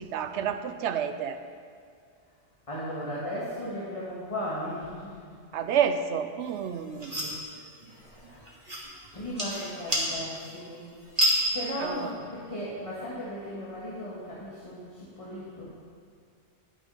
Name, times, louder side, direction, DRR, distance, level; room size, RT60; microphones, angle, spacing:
voice 1, 0.0-1.4 5.5-7.1 11.8-12.1, right 8 dB, 75° right, 9 dB, 0.9 m, -29 dB
voice 2, 2.7-5.3 7.1-7.3 7.8-8.4 9.1-10.9 11.5-15.7, equal, 30° left, -8 dB, 1.8 m, -36 dB
sound 1, 6.4-12.1, equal, 30° right, 2.1 m, -32 dB
11.5 x 6.4 x 5.5 m, 2.3 s
omnidirectional pair, 1.2 m